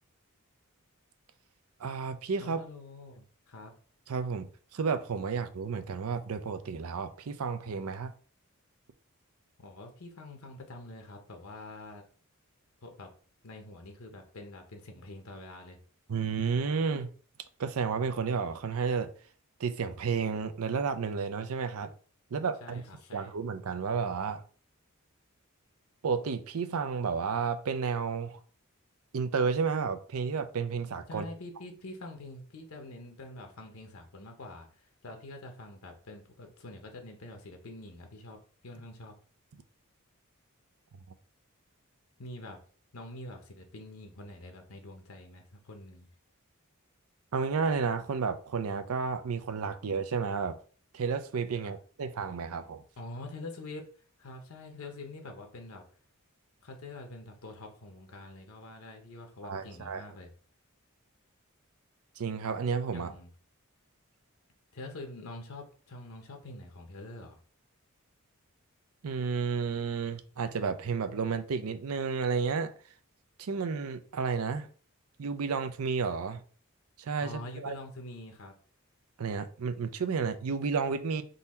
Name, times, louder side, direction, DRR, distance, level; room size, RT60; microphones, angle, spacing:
voice 1, 1.8-2.6 4.1-8.1 16.1-17.1 17.6-19.1 19.6-21.9 22.3-22.8 23.1-24.4 26.0-28.4 29.1-31.3 47.3-50.6 50.9-52.8 59.4-60.0 62.2-63.1 69.0-72.7 73.4-74.7 75.2-76.4 77.0-77.8 79.2-81.2, right 5 dB, 90° right, 0.5 m, -31 dB
voice 2, 2.4-3.7 9.6-12.0 12.8-13.1 13.4-15.8 22.6-23.3 31.1-38.4 38.6-39.1 42.2-42.6 42.9-46.1 51.6-51.8 53.0-53.9 54.2-55.9 56.6-60.3 62.9-63.3 64.7-67.4 77.2-78.6, left 2 dB, 75° left, 0.8 m, -45 dB
3.9 x 2.7 x 4.2 m
head